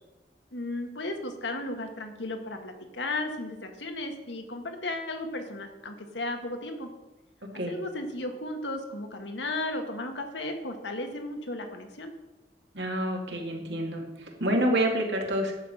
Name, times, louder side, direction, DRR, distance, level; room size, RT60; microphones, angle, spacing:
voice 1, 0.5-6.9 7.7-12.1, left 2 dB, 85° left, 4 dB, 1.6 m, -35 dB
voice 2, 12.7-15.5, right 1 dB, 75° right, 1 dB, 2.4 m, -28 dB
11.5 x 5.7 x 7.8 m, 1.1 s
head